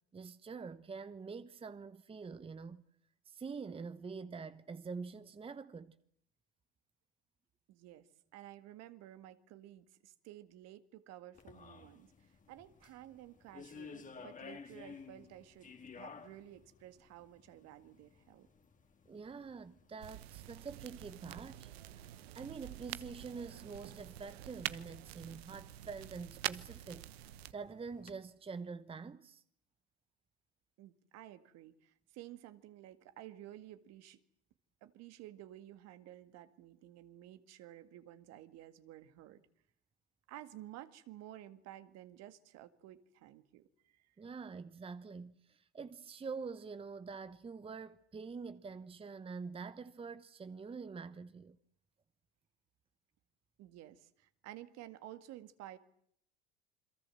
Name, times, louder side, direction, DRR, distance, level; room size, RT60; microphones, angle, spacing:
voice 1, 0.1-2.8 3.3-6.0 19.1-27.1 27.5-29.4 44.2-51.6, right 5 dB, 20° right, 1.0 m, -46 dB
voice 2, 7.7-18.5 30.8-34.2 34.8-39.4 40.3-44.2 53.6-55.8, right 13 dB, 55° right, 2.0 m, -53 dB
sound 1, 11.3-28.1, left 5 dB, 25° left, 2.4 m, -57 dB
sound 2, 20.0-27.5, right 14 dB, 75° right, 1.1 m, -46 dB
28.5 x 22.5 x 7.8 m
hypercardioid pair, 80°, 31 cm